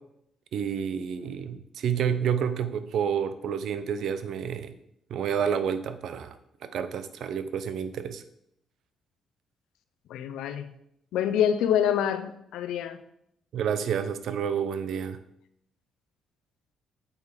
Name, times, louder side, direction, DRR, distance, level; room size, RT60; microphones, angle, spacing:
voice 1, 0.5-4.7 5.1-6.4 6.6-8.2 13.5-15.2, right 7 dB, 70° right, 11 dB, 0.7 m, -29 dB
voice 2, 10.1-10.7 11.1-13.0, left 9 dB, 85° left, 10 dB, 0.6 m, -26 dB
7.1 x 5.2 x 4.8 m, 0.76 s
cardioid pair, 90°, 0 cm